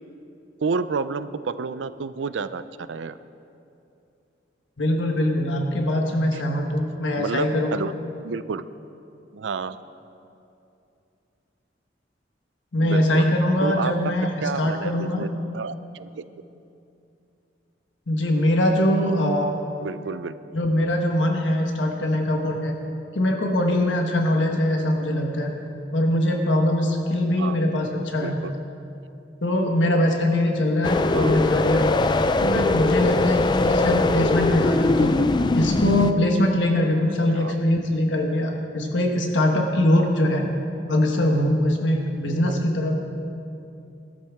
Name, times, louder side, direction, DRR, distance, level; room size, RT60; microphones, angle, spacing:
voice 1, 0.6-3.2 6.3-6.4 7.2-7.9 8.2-8.6 9.3-9.8 12.8-13.3 13.6-14.1 14.4-15.3 15.5-16.2 19.8-20.4 27.4-27.6 28.2-28.5 31.1-31.4 37.3-37.6 42.4-42.6, right 5 dB, 85° right, 13 dB, 0.5 m, -30 dB
voice 2, 4.8-7.8 12.7-15.2 18.1-19.6 20.5-22.8 23.1-25.5 25.9-28.4 29.4-32.0 32.4-35.1 35.5-40.5 40.9-43.0, left 1 dB, 85° left, 2 dB, 1.3 m, -22 dB
sound 1, 30.8-36.1, left 2 dB, 25° left, 0.3 m, -21 dB
19.5 x 13.0 x 3.6 m, 2.7 s
head